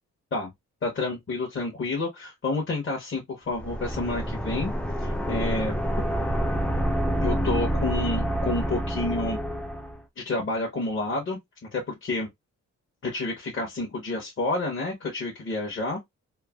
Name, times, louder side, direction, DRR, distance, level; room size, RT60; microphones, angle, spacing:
voice 1, 0.8-4.7 5.0-5.7 7.2-9.4 10.2-11.4 11.7-12.3 13.0-16.0, left 2 dB, 45° left, 0.9 m, -29 dB
sound 1, 3.5-10.0, equal, 5° left, 0.4 m, -27 dB
3.1 x 2.0 x 2.3 m
cardioid pair, 90°, 29 cm